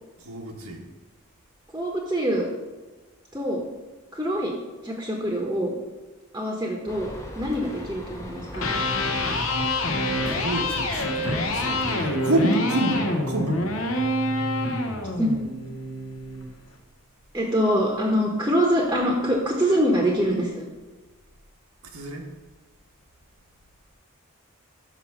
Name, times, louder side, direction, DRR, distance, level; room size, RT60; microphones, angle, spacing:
voice 1, 0.2-0.8 10.2-13.6 21.8-22.3, right 1 dB, 90° right, 1 dB, 1.4 m, -28 dB
voice 2, 1.7-2.5 3.3-3.6 4.1-4.6 4.8-5.7 6.3-7.1 7.4-8.7 15.2-15.3 17.3-20.7, equal, 15° right, -1 dB, 0.9 m, -24 dB
sound 1, 6.9-11.9, equal, 15° left, 0.7 m, -39 dB
Electric guitar, 8.5-16.5, left 1 dB, 75° left, 0.9 m, -26 dB
5.9 x 5.9 x 5.9 m, 1.3 s
head